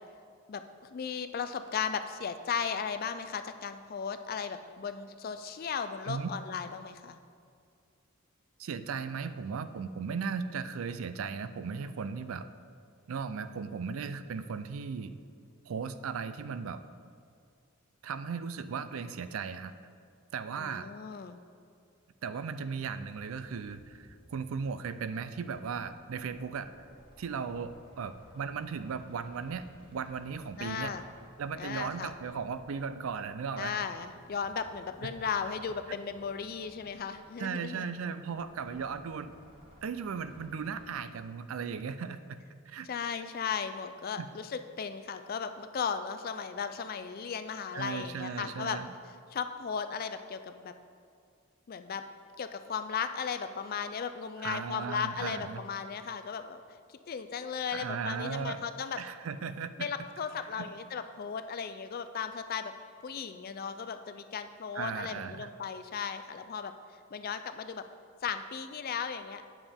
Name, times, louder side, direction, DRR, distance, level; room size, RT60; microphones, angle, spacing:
voice 1, 0.5-7.2 20.6-21.4 30.6-31.1 31.6-32.1 33.6-37.9 42.8-48.8 49.3-50.7 51.7-52.0 52.4-56.6 56.9-59.0 59.8-62.7 63.0-66.7 67.1-67.8 68.2-69.5, left 6 dB, 40° left, 10 dB, 0.3 m, -36 dB
voice 2, 8.6-12.4 13.1-15.1 15.6-16.8 18.0-19.7 20.3-20.9 22.2-26.7 27.2-29.6 29.9-30.9 31.4-33.8 35.9-36.0 37.4-39.3 39.8-42.4 42.7-42.9 44.2-44.3 47.7-48.9 54.4-55.6 57.7-58.6 59.0-59.9 60.6-60.7 64.7-65.5, right 6 dB, 65° right, 12 dB, 0.4 m, -36 dB
sound 1, 22.6-40.8, equal, 25° right, 1.1 m, -58 dB
9.2 x 7.1 x 3.5 m, 2.3 s
head